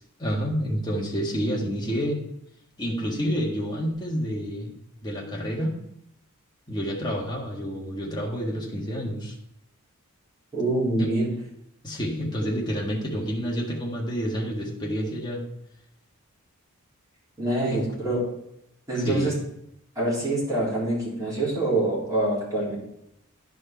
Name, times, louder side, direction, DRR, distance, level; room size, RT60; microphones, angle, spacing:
voice 1, 0.2-2.2 2.8-4.8 5.0-5.8 6.7-9.3 11.0-11.1 11.8-15.4 17.7-17.8 19.0-19.4, equal, 20° left, -2 dB, 1.6 m, -29 dB
voice 2, 10.5-11.3 17.4-18.2 18.9-19.3 20.0-22.8, right 2 dB, 15° right, -8 dB, 3.7 m, -25 dB
11.0 x 4.8 x 4.4 m, 0.80 s
head